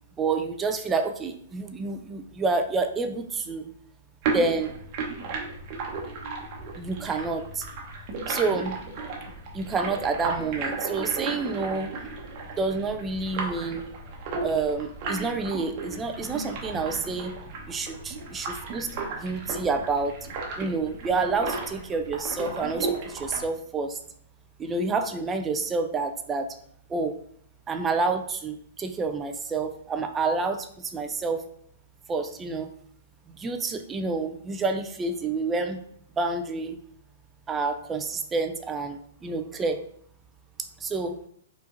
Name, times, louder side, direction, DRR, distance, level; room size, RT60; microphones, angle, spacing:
voice 1, 0.2-3.7 4.3-4.7 6.8-7.6 8.3-8.7 9.5-11.9 12.6-13.8 14.4-17.3 17.7-20.2 20.6-24.0 24.6-26.5 26.9-27.1 27.7-30.7 30.9-31.4 32.1-32.7 33.3-35.8 36.2-36.8 37.5-39.8 40.8-41.1, right 3 dB, 15° right, 6 dB, 0.4 m, -28 dB
sound 1, 4.2-23.4, right 4 dB, 45° right, 0.9 m, -34 dB
4.7 x 2.5 x 2.6 m, 0.65 s
figure-of-eight pair, 115°, 0 cm